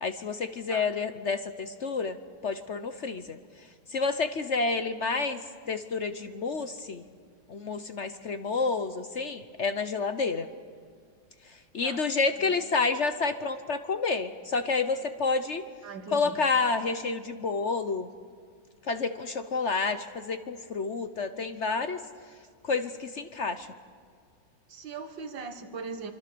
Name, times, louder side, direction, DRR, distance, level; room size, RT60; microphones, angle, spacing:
voice 1, 0.0-2.2 2.4-3.4 3.9-5.4 5.7-7.0 7.5-10.5 11.7-15.6 16.1-18.1 18.9-22.0 22.6-23.7, left 4 dB, 50° left, 10 dB, 0.9 m, -29 dB
voice 2, 15.8-16.4 24.7-26.1, right 4 dB, 90° right, 8 dB, 2.3 m, -40 dB
25.5 x 25.5 x 6.9 m, 2.1 s
omnidirectional pair, 1.9 m